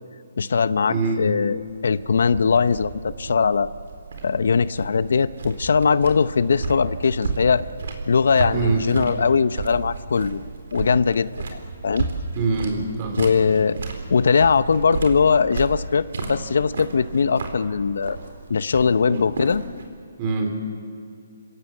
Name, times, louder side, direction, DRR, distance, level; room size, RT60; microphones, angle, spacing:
voice 1, 0.4-3.7 4.2-7.6 8.1-10.4 10.7-12.1 13.2-13.8 14.1-18.2 18.5-19.6, left 5 dB, 70° left, 15 dB, 0.7 m, -20 dB
sound 1, 0.6-19.9, right 4 dB, 65° right, 4.1 m, -33 dB
voice 2, 0.9-1.3 8.5-8.8 12.4-13.2 19.1-19.2 20.2-20.5, right 3 dB, 30° right, 3 dB, 3.9 m, -24 dB
28.5 x 17.0 x 7.9 m, 2.5 s
hypercardioid pair, 160°, 0 cm